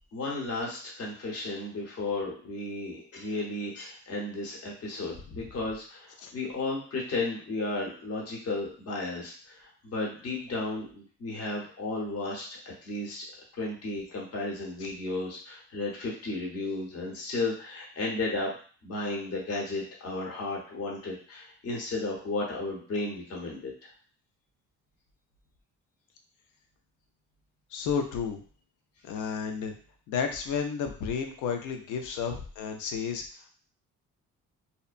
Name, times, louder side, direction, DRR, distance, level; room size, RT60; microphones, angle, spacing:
voice 1, 0.1-13.2 13.6-18.5 18.8-23.7, left 2 dB, 50° left, -2 dB, 0.9 m, -34 dB
voice 2, 27.7-28.4 29.1-29.7 30.1-33.2, left 6 dB, 85° left, 5 dB, 0.5 m, -31 dB
2.8 x 2.1 x 2.4 m, 0.42 s
cardioid pair, 90°, 30 cm